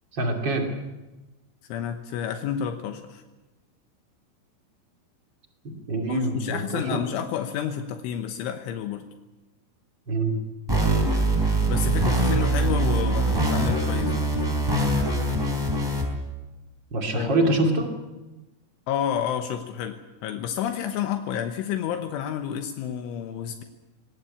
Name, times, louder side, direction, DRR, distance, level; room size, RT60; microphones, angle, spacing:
voice 1, 0.1-0.7 5.9-7.0 10.1-10.4 16.9-17.9, right 2 dB, 30° right, 3 dB, 2.2 m, -25 dB
voice 2, 1.7-3.2 6.1-9.0 11.6-14.3 17.1-17.4 18.9-23.6, left 9 dB, 75° left, 6 dB, 3.4 m, -30 dB
sound 1, 10.7-16.0, right 2 dB, 5° right, 3.3 m, -23 dB
22.0 x 18.5 x 8.6 m, 1.1 s
omnidirectional pair, 5.8 m